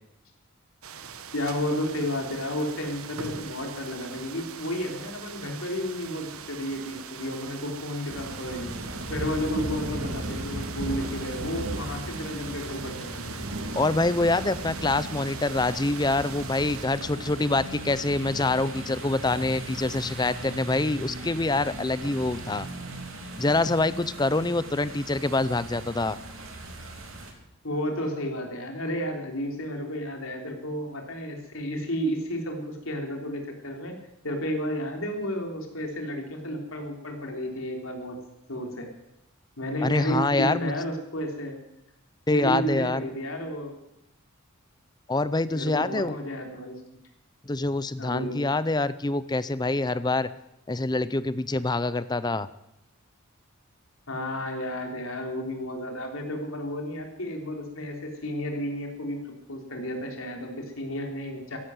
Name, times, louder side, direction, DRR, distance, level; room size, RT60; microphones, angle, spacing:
sound 1, 0.8-16.9, right 6 dB, 85° right, 1.2 m, -42 dB
voice 1, 1.3-8.8 9.1-13.4 27.6-33.9 34.2-38.2 38.5-38.9 39.6-41.6 42.3-43.8 45.5-46.8 48.0-48.4 54.1-59.2 59.5-61.6, equal, 75° left, 3 dB, 3.4 m, -32 dB
sound 2, 8.1-27.3, right 1 dB, 70° right, 2.9 m, -37 dB
voice 2, 13.7-22.7 23.4-26.2 39.8-40.7 42.3-43.0 45.1-46.2 47.4-50.3 50.7-52.5, left 2 dB, 20° left, 15 dB, 0.5 m, -25 dB
14.5 x 11.5 x 7.8 m, 0.85 s
head